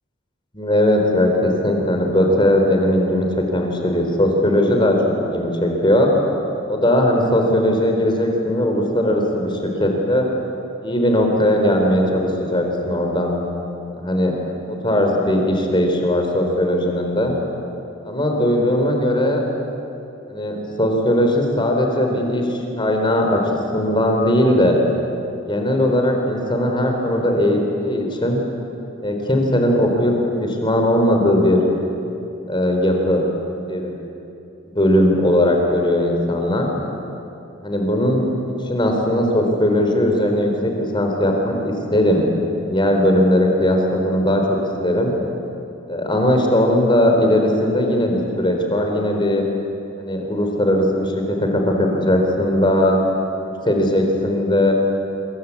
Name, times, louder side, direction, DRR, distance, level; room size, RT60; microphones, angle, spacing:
voice 1, 0.5-6.1 6.7-10.3 10.8-13.3 13.9-14.3 14.7-17.3 18.0-19.4 20.3-23.4 23.7-24.8 25.5-28.4 29.0-30.1 30.4-31.6 32.5-33.2 33.7-33.9 34.7-36.7 37.6-38.3 38.6-42.2 42.7-44.6 44.8-45.1 45.9-49.4 50.0-53.0 53.6-54.7, left 1 dB, 25° left, 2 dB, 4.1 m, -18 dB
26.5 x 23.0 x 8.5 m, 2.8 s
head